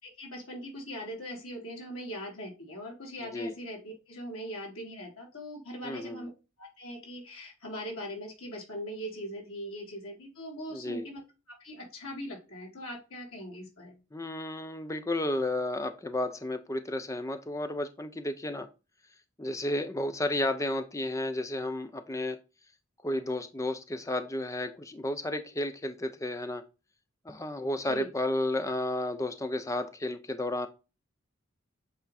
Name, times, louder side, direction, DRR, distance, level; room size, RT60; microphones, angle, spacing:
voice 1, 0.0-6.3 6.6-11.2 11.6-13.9 27.9-28.1, equal, 85° left, -1 dB, 3.5 m, -41 dB
voice 2, 3.2-3.5 5.8-6.3 10.7-11.0 14.1-18.7 19.4-22.4 23.0-26.6 27.3-30.7, left 1 dB, 15° left, 8 dB, 0.6 m, -32 dB
8.1 x 3.6 x 4.2 m, 0.29 s
head